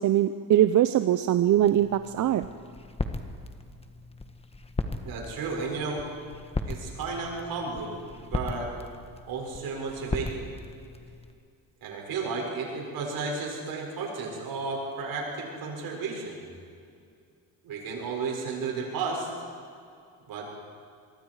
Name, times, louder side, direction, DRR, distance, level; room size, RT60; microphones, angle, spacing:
voice 1, 0.0-2.5, right 12 dB, 50° right, 11 dB, 0.7 m, -22 dB
sound 1, 1.6-11.3, left 2 dB, 15° left, 1.6 m, -37 dB
voice 2, 5.0-6.0 6.7-8.7 9.2-10.5 11.8-16.4 17.6-19.3 20.3-20.5, right 4 dB, 70° right, -1 dB, 6.7 m, -33 dB
25.0 x 22.5 x 4.9 m, 2.4 s
cardioid pair, 105°, 37 cm